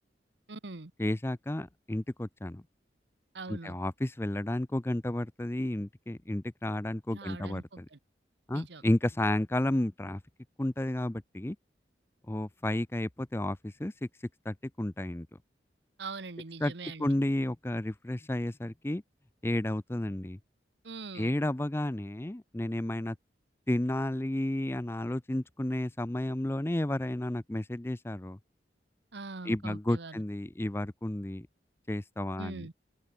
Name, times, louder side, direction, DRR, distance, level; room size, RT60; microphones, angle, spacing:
voice 1, 0.5-0.9 3.3-3.7 7.1-8.0 8.5-8.8 16.0-17.2 20.8-21.3 29.1-30.2 32.4-32.7, right 3 dB, 80° right, 1.2 m, -42 dB
voice 2, 1.0-2.6 3.5-7.9 8.5-10.2 10.6-11.6 12.3-14.1 14.5-15.3 16.6-16.7 17.0-19.0 19.4-20.4 21.1-23.1 23.7-28.4 29.5-31.5 31.9-32.7, left 1 dB, 15° left, 0.5 m, -32 dB
open air
head